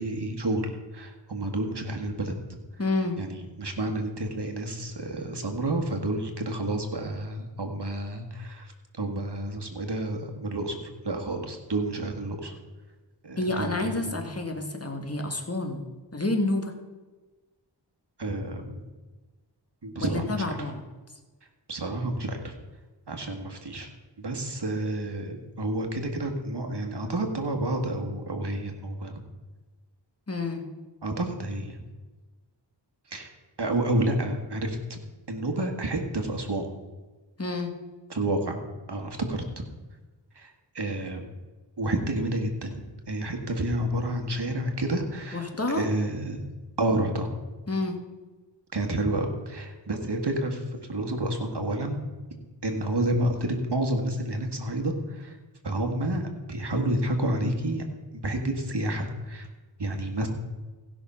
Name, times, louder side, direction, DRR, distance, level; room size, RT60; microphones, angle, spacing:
voice 1, 0.0-2.3 3.2-12.5 13.2-14.2 18.2-18.9 19.8-20.7 21.7-22.5 23.1-23.9 24.2-29.2 31.0-31.8 33.1-33.3 33.6-35.0 35.3-36.7 38.1-38.6 38.9-39.6 40.3-41.2 41.8-46.4 46.8-47.3 48.7-52.0 52.6-55.4 55.6-57.9 58.1-59.5 59.8-60.3, right 1 dB, 60° right, 4 dB, 1.7 m, -30 dB
voice 2, 2.8-3.2 13.4-15.9 16.1-16.7 20.0-20.8 30.3-30.6 37.4-37.7 45.3-45.9 47.7-48.0, left 2 dB, 30° left, 4 dB, 1.7 m, -29 dB
15.5 x 6.0 x 5.6 m, 1.3 s
wide cardioid pair, 45°, 45 cm